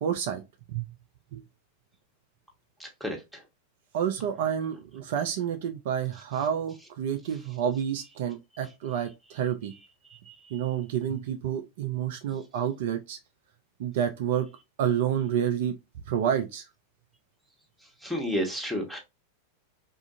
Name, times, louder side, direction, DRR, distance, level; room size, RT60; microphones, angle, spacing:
voice 1, 0.0-0.4 0.7-0.9 1.3-1.4 3.9-9.7 10.5-13.2 13.8-14.5 14.8-15.7 16.1-16.7, right 9 dB, 55° right, 0.4 m, -29 dB
voice 2, 18.0-19.0, equal, ahead, 1.1 m, -29 dB
3.6 x 2.4 x 2.5 m
figure-of-eight pair, 90°, 0 cm